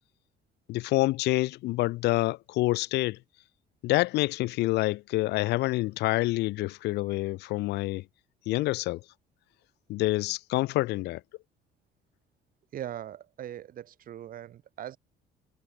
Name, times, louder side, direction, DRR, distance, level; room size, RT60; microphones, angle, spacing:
voice 1, 0.7-3.2 3.8-8.0 8.5-9.0 9.9-11.2, left 19 dB, 80° left, 0.8 m, -27 dB
voice 2, 12.7-15.0, right 11 dB, 55° right, 1.9 m, -40 dB
cardioid pair, 110°, 17 cm